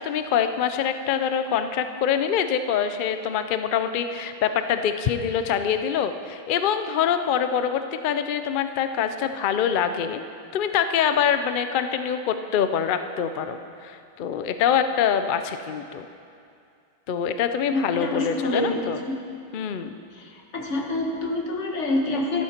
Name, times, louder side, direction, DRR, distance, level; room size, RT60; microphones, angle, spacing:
voice 1, 0.0-10.2 10.5-16.1 17.1-19.0 19.5-20.0, left 8 dB, 80° left, 9 dB, 0.4 m, -25 dB
voice 2, 17.7-19.1 20.5-22.4, left 2 dB, 55° left, 1 dB, 1.5 m, -26 dB
13.0 x 12.0 x 4.4 m, 2.4 s
omnidirectional pair, 1.5 m